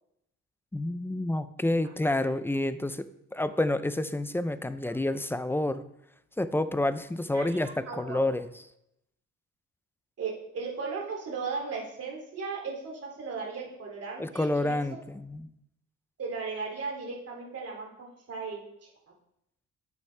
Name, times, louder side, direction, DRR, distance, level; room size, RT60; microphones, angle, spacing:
voice 1, 0.7-5.8 6.4-8.5 14.2-15.5, left 1 dB, 10° left, 13 dB, 0.5 m, -29 dB
voice 2, 7.3-8.2 10.2-15.0 16.2-18.9, right 4 dB, 55° right, -1 dB, 2.7 m, -36 dB
9.2 x 7.2 x 3.3 m, 0.81 s
cardioid pair, 90°, 30 cm